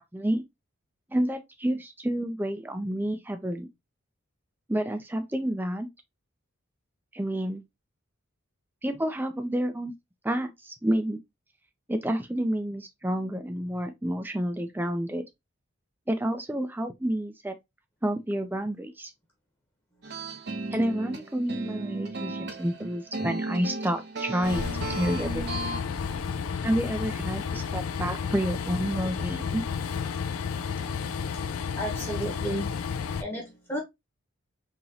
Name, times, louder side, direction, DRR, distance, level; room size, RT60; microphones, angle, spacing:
voice 1, 0.1-0.4 1.1-3.7 4.7-5.9 7.1-7.6 8.8-9.9 10.2-11.2 11.9-15.2 16.1-17.6 18.0-19.1 20.7-25.4 26.6-29.6 30.8-31.0, right 1 dB, 10° right, 0.4 m, -29 dB
sound 1, 20.0-25.8, right 2 dB, 50° right, 0.8 m, -35 dB
Train, 24.4-33.2, left 6 dB, 85° left, 0.4 m, -32 dB
voice 2, 31.8-32.7 33.2-33.8, right 1 dB, 10° left, 0.9 m, -32 dB
3.9 x 3.0 x 2.7 m
head